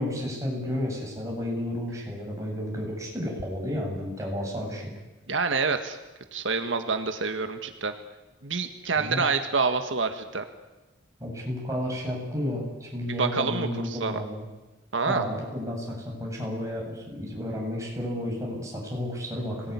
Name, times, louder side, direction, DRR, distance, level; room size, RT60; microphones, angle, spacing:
voice 1, 0.0-4.9 9.0-9.2 11.2-14.4 15.1-19.7, left 1 dB, 15° right, -1 dB, 7.9 m, -32 dB
voice 2, 5.3-6.0 6.3-7.9 8.4-10.4 13.2-14.2 14.9-15.3, right 4 dB, 80° right, 6 dB, 1.6 m, -27 dB
26.0 x 19.5 x 9.8 m, 1.1 s
head